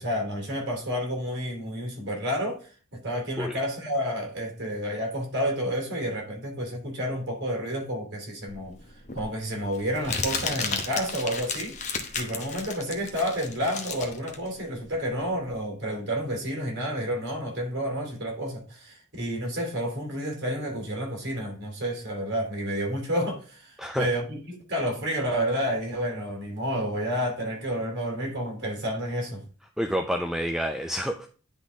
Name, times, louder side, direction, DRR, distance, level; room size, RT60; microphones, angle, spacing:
voice 1, 0.0-8.7 9.1-29.4, equal, 50° right, 3.1 m, -30 dB
Crumpling crinkling, 8.5-15.6, left 5 dB, 35° left, 0.9 m, -34 dB
voice 2, 29.8-31.3, equal, ahead, 0.4 m, -28 dB
10.0 x 4.0 x 3.5 m
head